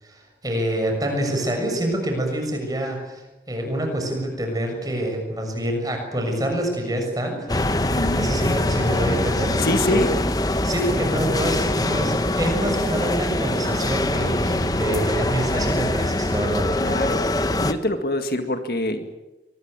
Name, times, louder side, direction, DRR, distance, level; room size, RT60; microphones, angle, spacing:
voice 1, 0.0-7.5 8.1-10.0 10.6-16.7, right 1 dB, 20° right, 3 dB, 6.7 m, -26 dB
sound 1, 7.5-17.7, left 1 dB, 20° left, 1.1 m, -23 dB
voice 2, 7.8-8.3 9.6-10.1 16.8-17.3 17.6-19.1, left 1 dB, 55° left, 7 dB, 2.0 m, -25 dB
24.0 x 20.5 x 9.0 m, 1.0 s
head